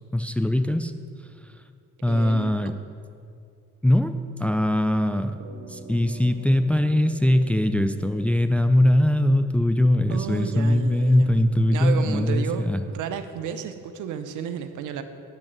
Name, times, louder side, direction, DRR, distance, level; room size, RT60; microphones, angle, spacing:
voice 1, 0.1-0.9 2.0-2.7 3.8-4.1 4.4-5.4 5.7-12.8, left 1 dB, 5° left, 9 dB, 0.3 m, -21 dB
voice 2, 2.1-2.5 10.1-11.3 11.7-15.0, right 8 dB, 85° right, 9 dB, 0.7 m, -32 dB
sound 1, 5.4-10.0, right 3 dB, 55° right, 1.8 m, -46 dB
10.5 x 5.5 x 6.0 m, 2.4 s
cardioid pair, 90°, 30 cm